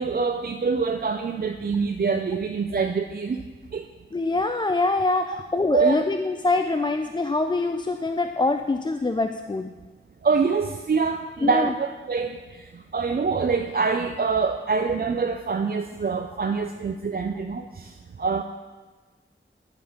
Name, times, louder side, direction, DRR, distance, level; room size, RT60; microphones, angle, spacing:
voice 1, 0.0-3.4 3.7-3.9 5.7-6.0 10.2-18.4, right 5 dB, 50° right, 5 dB, 0.4 m, -25 dB
voice 2, 4.1-9.7 11.4-11.7, left 3 dB, 20° left, 7 dB, 0.3 m, -24 dB
11.0 x 4.0 x 5.1 m, 1.3 s
wide cardioid pair, 50°, 21 cm